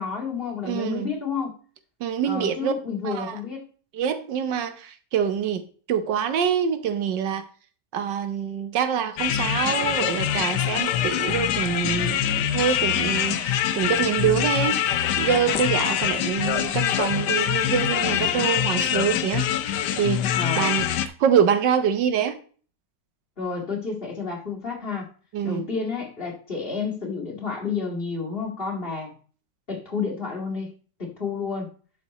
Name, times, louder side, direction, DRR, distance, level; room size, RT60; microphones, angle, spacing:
voice 1, 0.0-1.5 2.2-3.6 20.3-20.8 23.4-25.1 25.4-29.1 29.7-30.7 31.0-31.7, left 5 dB, 30° left, 2.1 m, -30 dB
voice 2, 0.6-1.2 2.0-2.7 3.0-3.4 3.9-7.5 7.9-14.8 15.2-20.9 21.2-22.4 25.3-25.7, right 8 dB, 85° right, 1.6 m, -25 dB
sound 1, 9.2-21.1, left 10 dB, 75° left, 1.3 m, -24 dB
11.5 x 5.2 x 4.1 m
omnidirectional pair, 1.9 m